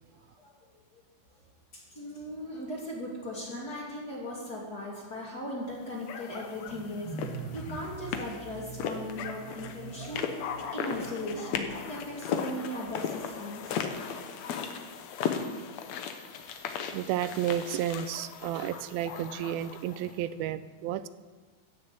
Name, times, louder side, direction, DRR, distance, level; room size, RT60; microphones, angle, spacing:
voice 1, 1.7-10.2 10.7-13.7, left 1 dB, 30° left, -4 dB, 2.5 m, -38 dB
sound 1, 6.1-20.1, left 7 dB, 75° left, 1.6 m, -37 dB
sound 2, 6.4-12.7, right 5 dB, 60° right, 3.3 m, -44 dB
voice 2, 16.9-21.1, right 11 dB, 85° right, 14 dB, 2.3 m, -32 dB
14.5 x 6.5 x 8.5 m, 1.4 s
omnidirectional pair, 4.4 m